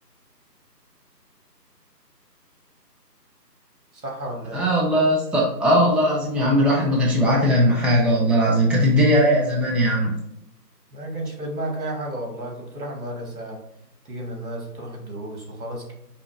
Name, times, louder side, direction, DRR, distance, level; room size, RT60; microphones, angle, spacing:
voice 1, 3.9-4.7 10.9-13.6 14.0-15.9, right 1 dB, 60° right, 0 dB, 1.3 m, -32 dB
voice 2, 4.5-10.1, equal, 5° right, -4 dB, 0.4 m, -19 dB
4.8 x 2.8 x 2.4 m, 0.81 s
figure-of-eight pair, 175°, 50 cm